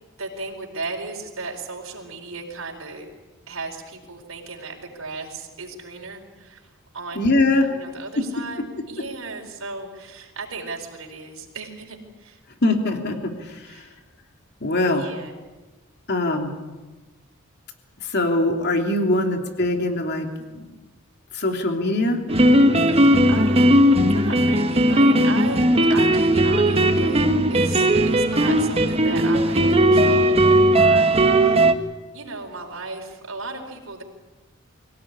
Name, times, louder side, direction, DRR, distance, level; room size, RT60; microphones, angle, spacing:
voice 1, 0.2-3.1 3.5-7.3 7.7-12.4 13.6-14.0 14.9-15.3 22.8-23.8 24.0-31.7 32.1-34.0, right 3 dB, 80° right, 0 dB, 4.6 m, -35 dB
voice 2, 7.1-7.7 12.6-13.6 14.6-15.0 16.1-16.5 18.1-20.3 21.3-22.2, left 2 dB, 55° left, 3 dB, 3.1 m, -22 dB
sound 1, 22.3-31.7, right 1 dB, 30° right, 1.5 m, -17 dB
24.5 x 17.0 x 10.0 m, 1.2 s
head